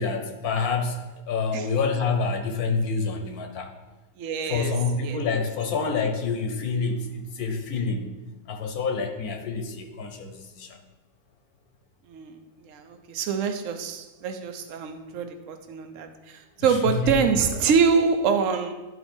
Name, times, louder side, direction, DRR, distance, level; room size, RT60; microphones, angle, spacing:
voice 1, 0.0-3.7 4.4-8.2 8.5-10.8 16.6-17.1, left 4 dB, 80° left, 5 dB, 1.4 m, -27 dB
voice 2, 4.2-4.7 5.0-5.2 12.1-18.7, right 5 dB, 65° right, 7 dB, 1.1 m, -25 dB
11.0 x 4.3 x 4.4 m, 1.2 s
omnidirectional pair, 1.5 m